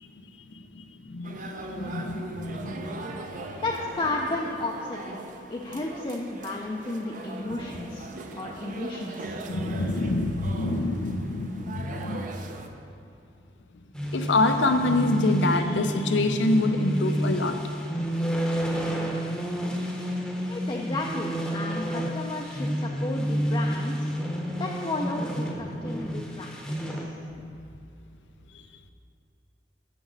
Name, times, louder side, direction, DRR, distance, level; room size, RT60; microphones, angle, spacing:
voice 1, 0.8-3.1 9.5-12.3 14.1-17.6, left 2 dB, 90° left, 7 dB, 0.6 m, -26 dB
sound 1, 1.2-12.7, right 2 dB, 45° right, 0.5 m, -40 dB
voice 2, 3.6-5.2 5.5-9.4 20.5-24.1 24.5-27.2, left 2 dB, 30° left, -1 dB, 0.4 m, -33 dB
sound 2, 13.9-27.0, equal, 5° left, 0.8 m, -30 dB
6.0 x 5.2 x 6.2 m, 2.6 s
head